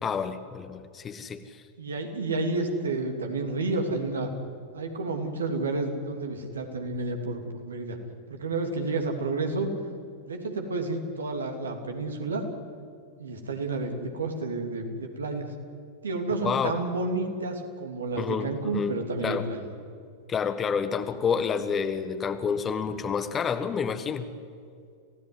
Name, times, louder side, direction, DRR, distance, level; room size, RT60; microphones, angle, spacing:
voice 1, 0.0-1.4 16.4-16.7 18.2-18.9 19.2-19.4 20.3-24.3, left 6 dB, 20° left, 10 dB, 1.4 m, -29 dB
voice 2, 1.8-4.3 4.7-8.0 8.3-9.7 10.2-12.4 13.2-15.5 16.0-19.7, right 3 dB, 70° right, 4 dB, 3.0 m, -30 dB
27.5 x 17.0 x 9.6 m, 2.3 s
figure-of-eight pair, 90°, 0 cm